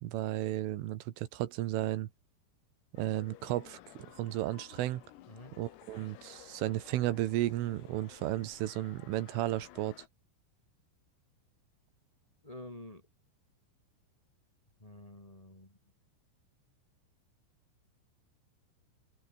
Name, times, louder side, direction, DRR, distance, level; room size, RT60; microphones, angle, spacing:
voice 1, 0.0-2.1 2.9-5.0 5.6-10.0, right 14 dB, 75° right, 3.9 m, -34 dB
sound 1, 3.0-10.1, left 14 dB, 90° left, 4.5 m, -55 dB
voice 2, 12.4-13.1 14.8-15.8, left 1 dB, 10° left, 3.6 m, -49 dB
open air
omnidirectional pair, 5.9 m